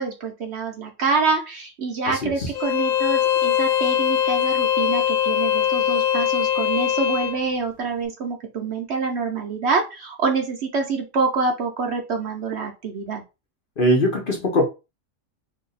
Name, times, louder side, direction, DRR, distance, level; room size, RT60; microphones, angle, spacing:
voice 1, 0.0-13.2, right 4 dB, 60° right, 3 dB, 0.8 m, -26 dB
voice 2, 2.1-2.5 13.8-14.6, equal, 45° left, 1 dB, 0.8 m, -21 dB
Bowed string instrument, 2.5-7.4, left 10 dB, 80° left, 1.1 m, -21 dB
2.7 x 2.7 x 3.9 m, 0.27 s
omnidirectional pair, 1.4 m